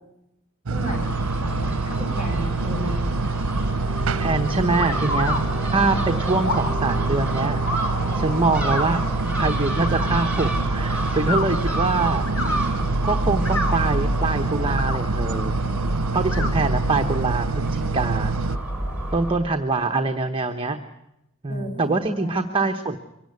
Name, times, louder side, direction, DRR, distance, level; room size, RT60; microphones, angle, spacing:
voice 1, 0.7-3.0 21.5-22.5, equal, 35° left, 1 dB, 8.0 m, -34 dB
Crow / Gull seagull, 0.7-19.4, right 1 dB, 5° right, 7.4 m, -27 dB
sound 1, 0.7-18.6, right 4 dB, 70° right, 0.8 m, -27 dB
voice 2, 4.2-5.4 5.7-7.6 8.1-9.0 9.4-12.3 13.0-15.6 16.1-18.3 19.1-20.8 21.4-23.0, right 3 dB, 25° right, 6 dB, 1.0 m, -24 dB
sound 2, 4.8-5.4 6.4-6.7 7.6-7.9 8.7-8.9 9.8-10.1 11.2-11.5 12.2-12.5 13.3-13.8 14.6-15.0 16.3-16.5, left 2 dB, 75° left, 3.0 m, -28 dB
24.0 x 17.5 x 9.6 m, 0.87 s
head